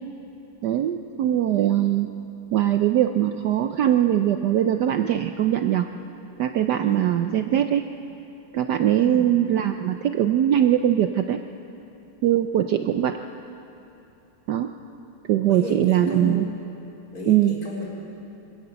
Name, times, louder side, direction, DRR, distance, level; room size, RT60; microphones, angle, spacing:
voice 1, 0.6-2.1 2.5-5.9 6.4-7.8 8.5-11.4 12.2-13.2 14.5-14.7 15.3-16.5 17.3-17.5, right 11 dB, 70° right, 7 dB, 1.1 m, -21 dB
voice 2, 9.0-9.3 15.4-16.5 17.1-17.8, left 1 dB, 45° left, -5 dB, 5.0 m, -33 dB
25.0 x 16.0 x 6.9 m, 2.9 s
omnidirectional pair, 2.2 m